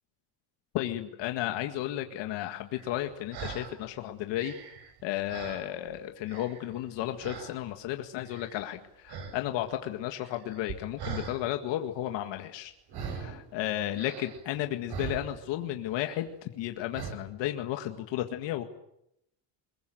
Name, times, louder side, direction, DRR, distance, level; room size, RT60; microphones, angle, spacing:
voice 1, 0.7-4.5 5.0-12.7 13.1-18.6, left 13 dB, 75° left, 5 dB, 1.9 m, -33 dB
sound 1, 2.7-3.8 4.2-6.0 6.2-6.8 7.2-7.6 8.2-8.8 9.1-9.4 9.6-11.4 12.9-13.4 13.9-15.6 15.9-16.3 16.9-17.1, right 6 dB, 65° right, 7.6 m, -41 dB
22.0 x 22.0 x 9.2 m, 0.80 s
cardioid pair, 140°, 43 cm